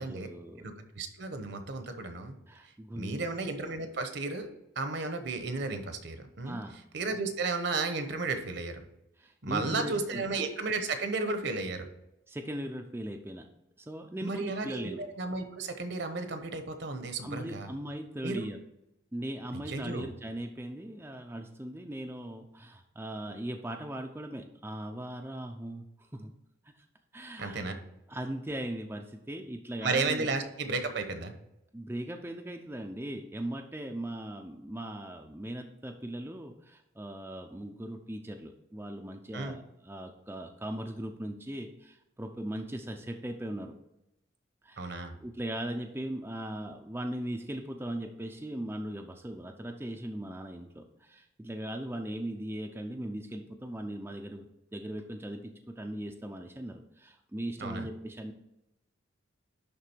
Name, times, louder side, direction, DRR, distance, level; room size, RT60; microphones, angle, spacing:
voice 1, 0.0-0.7 2.5-3.2 6.4-6.8 9.2-10.2 12.3-13.5 13.8-15.0 17.2-18.6 19.1-26.3 26.8-26.9 27.1-27.7 28.1-30.3 31.7-43.7 44.6-54.5 54.7-58.3, right 1 dB, 10° right, 3 dB, 0.5 m, -39 dB
voice 2, 0.6-2.3 2.9-4.5 4.8-6.6 6.9-8.8 9.4-11.9 14.2-17.7 18.2-18.5 19.7-20.1 27.4-27.7 29.8-31.3 39.3-39.6 44.8-45.1 57.6-57.9, right 3 dB, 60° right, 7 dB, 1.0 m, -33 dB
11.0 x 3.7 x 4.5 m, 0.86 s
head